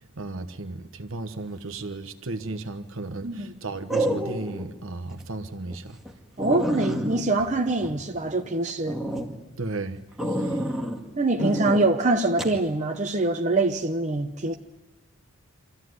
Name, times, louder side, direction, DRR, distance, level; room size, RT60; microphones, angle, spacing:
voice 1, 0.2-6.0 9.6-10.0 10.3-10.6 11.4-11.6, right 2 dB, 60° right, 1.2 m, -34 dB
sound 1, 2.3-2.7 3.9-4.7 5.1-5.2 5.7-5.8 6.1-6.2 6.4-8.4 8.8-9.3 10.2-11.0 11.4-11.8 12.4-12.6, right 1 dB, ahead, 2.2 m, -29 dB
voice 2, 3.2-3.5 6.4-9.0 11.2-14.6, right 2 dB, 30° right, 0.9 m, -24 dB
25.5 x 14.5 x 9.6 m
head